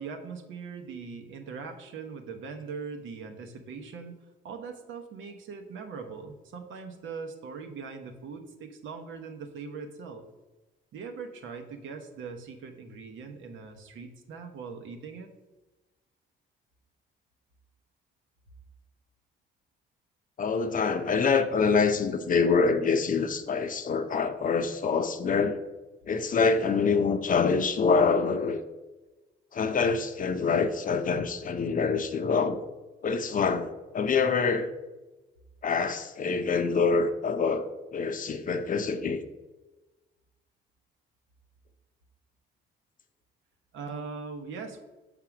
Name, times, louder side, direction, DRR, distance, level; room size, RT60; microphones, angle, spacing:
voice 1, 0.0-4.2 4.4-10.2 10.9-15.3 43.7-44.8, right 5 dB, 75° right, 0.9 m, -41 dB
voice 2, 20.4-25.6 26.0-28.6 29.5-32.6 33.0-34.7 35.6-37.6 37.9-39.2, left 5 dB, 40° left, 0.6 m, -25 dB
5.9 x 3.7 x 5.9 m
cardioid pair, 90°, 20 cm